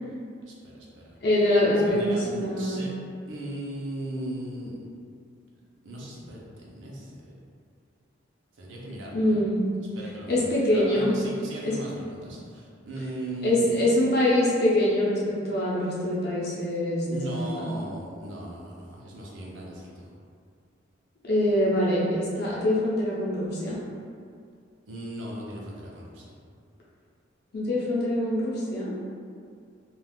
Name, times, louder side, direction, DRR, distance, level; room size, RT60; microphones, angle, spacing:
voice 1, 0.5-1.2 1.9-2.9 3.3-4.8 5.8-7.3 8.5-9.4 9.9-13.7 17.1-20.1 24.9-26.4, right 1 dB, 80° right, -4 dB, 0.6 m, -38 dB
voice 2, 1.2-2.8 9.1-9.6 10.3-11.2 11.6-11.8 13.4-17.7 21.2-23.8 27.5-29.0, left 1 dB, 55° left, -6 dB, 0.7 m, -24 dB
3.4 x 2.4 x 2.3 m, 2.2 s
head